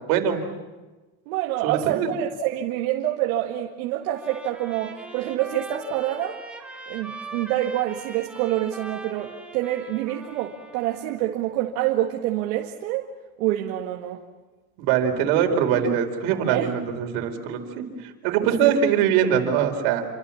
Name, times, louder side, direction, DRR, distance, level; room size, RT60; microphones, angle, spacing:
voice 1, 0.1-0.5 1.6-2.1 14.8-20.1, right 8 dB, 65° right, 4 dB, 4.6 m, -23 dB
voice 2, 1.3-6.4 6.9-13.1 13.4-14.2 16.5-16.7 18.6-18.8, right 13 dB, 85° right, 1 dB, 2.1 m, -27 dB
Trumpet, 4.0-11.2, right 2 dB, 5° right, 2.9 m, -41 dB
28.5 x 25.0 x 7.2 m, 1.2 s
cardioid pair, 150°, 41 cm